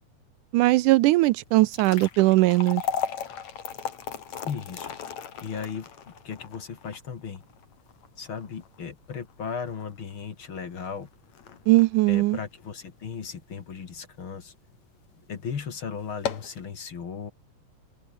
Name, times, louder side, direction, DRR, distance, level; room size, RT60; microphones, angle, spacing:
voice 1, 0.5-2.8 11.7-12.4, right 19 dB, 85° right, 2.1 m, -20 dB
sound 1, 1.5-13.8 14.2-14.3 15.0-15.2 15.5-15.6 16.0-16.6, left 8 dB, 60° left, 3.5 m, -37 dB
voice 2, 4.4-5.0 5.4-5.9 6.2-7.4 8.2-11.1 12.1-14.5 15.3-17.3, left 6 dB, 45° left, 2.5 m, -36 dB
omnidirectional pair, 3.7 m